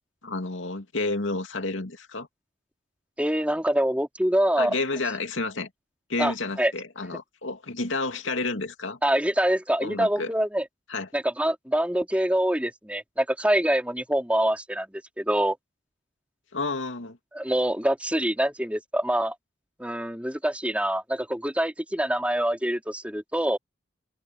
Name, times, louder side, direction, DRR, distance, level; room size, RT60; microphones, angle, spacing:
voice 1, 0.2-2.3 4.6-5.7 6.1-9.0 9.8-10.3 10.9-11.1 16.5-17.2, left 3 dB, 75° left, 2.5 m, -30 dB
voice 2, 3.2-4.7 6.2-6.7 9.0-10.6 11.1-15.6 17.3-19.3 19.8-23.6, right 1 dB, 5° right, 4.4 m, -25 dB
head